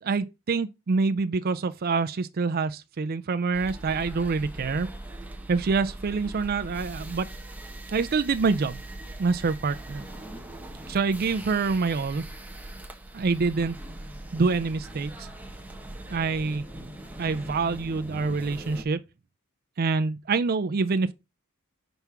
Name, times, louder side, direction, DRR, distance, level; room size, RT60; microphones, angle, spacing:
voice 1, 0.0-4.9 5.5-7.3 7.9-8.8 9.2-10.1 10.9-12.2 13.1-13.8 14.3-15.3 16.1-16.6 17.2-19.0 19.8-21.1, right 4 dB, 45° right, 0.4 m, -26 dB
sound 1, 3.5-18.8, right 1 dB, 5° right, 1.0 m, -41 dB
5.4 x 4.7 x 5.7 m
head